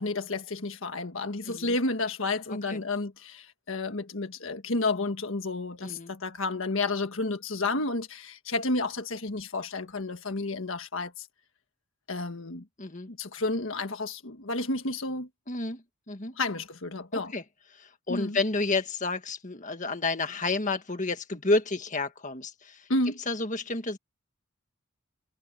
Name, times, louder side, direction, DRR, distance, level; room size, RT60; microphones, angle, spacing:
voice 1, 0.0-11.3 12.1-12.6 13.1-15.3 16.4-17.3 18.1-18.4 22.9-23.2, left 2 dB, 70° left, 1.5 m, -31 dB
voice 2, 2.5-2.8 5.8-6.1 12.8-13.1 15.5-16.3 17.1-17.4 17.7-22.9 23.3-24.0, left 3 dB, 35° left, 1.7 m, -30 dB
head